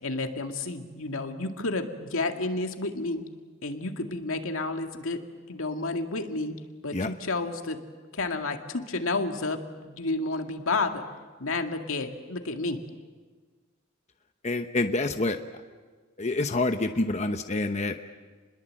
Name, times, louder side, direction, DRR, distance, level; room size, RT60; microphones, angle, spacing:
voice 1, 0.0-3.2 3.6-5.2 5.5-6.5 6.8-7.8 8.1-11.0 11.4-12.8, left 3 dB, 85° left, 5 dB, 2.2 m, -31 dB
voice 2, 14.4-15.4 16.2-18.0, left 2 dB, 35° left, 6 dB, 0.9 m, -27 dB
29.5 x 21.5 x 7.7 m, 1.4 s
head